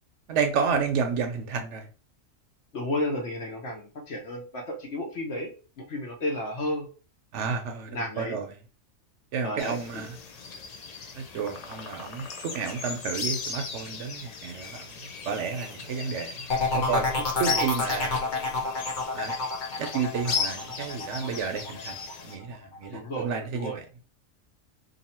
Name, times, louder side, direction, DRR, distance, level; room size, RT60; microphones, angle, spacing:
voice 1, 0.3-1.9 7.3-8.5 9.3-10.2 11.1-18.2 19.1-19.3 19.8-22.0 22.2-23.8, right 6 dB, 65° right, 0.8 m, -31 dB
voice 2, 2.7-6.9 7.9-8.4 9.4-10.0 17.4-17.7 22.9-23.8, left 1 dB, 60° left, 1.2 m, -33 dB
sound 1, 9.6-22.3, left 5 dB, 90° left, 0.3 m, -37 dB
sound 2, 16.5-22.1 22.5-23.0, left 3 dB, 40° left, 0.9 m, -29 dB
2.7 x 2.7 x 4.2 m
omnidirectional pair, 1.4 m